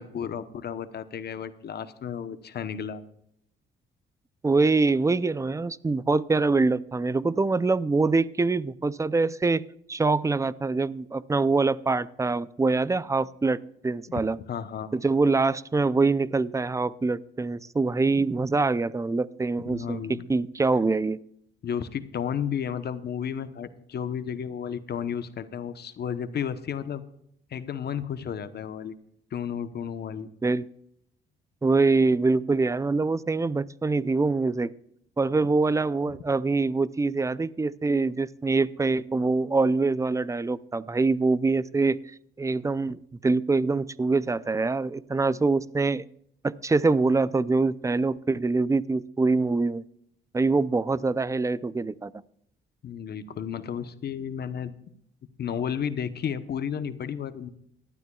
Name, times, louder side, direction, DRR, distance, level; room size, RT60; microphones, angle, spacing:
voice 1, 0.0-3.0 14.5-14.9 19.7-20.3 21.6-27.0 27.5-29.0 29.3-30.3 52.8-54.7 55.4-57.5, left 8 dB, 55° left, 11 dB, 1.0 m, -32 dB
voice 2, 4.4-9.6 9.9-14.4 14.9-21.2 30.4-30.7 31.6-34.7 35.2-42.0 42.4-46.1 46.4-49.8 50.3-52.1, right 3 dB, 15° right, 18 dB, 0.5 m, -24 dB
18.0 x 12.5 x 2.4 m, 0.72 s
cardioid pair, 90°, 20 cm